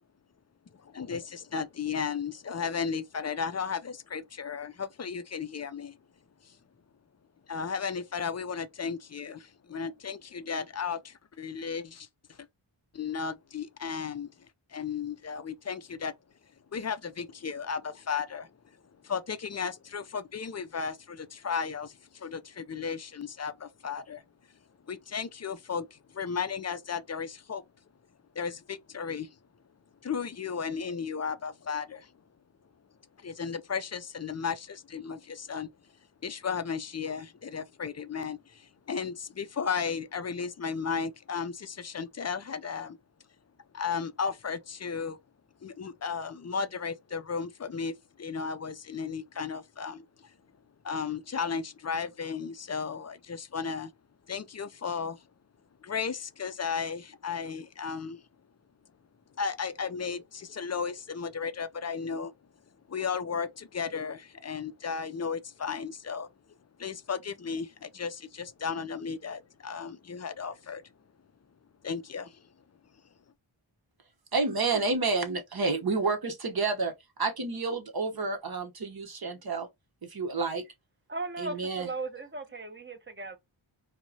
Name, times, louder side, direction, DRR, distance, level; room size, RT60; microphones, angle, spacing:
voice 1, 0.8-6.0 6.4-6.5 7.5-12.1 12.9-14.3 14.7-16.1 16.7-18.5 19.0-24.2 24.9-27.6 28.4-29.3 30.0-32.1 33.2-35.7 36.2-43.0 43.7-45.2 45.6-50.3 50.8-53.9 54.3-55.2 55.8-58.2 59.4-62.3 62.9-66.3 66.8-70.8 71.8-72.4, left 6 dB, 35° left, 0.5 m, -34 dB
voice 2, 74.3-76.9 77.2-79.7 80.0-80.6 81.4-81.9, right 3 dB, 50° right, 1.0 m, -29 dB
voice 3, 81.1-83.4, right 3 dB, 25° right, 0.9 m, -37 dB
4.5 x 2.1 x 2.7 m
cardioid pair, 45°, 48 cm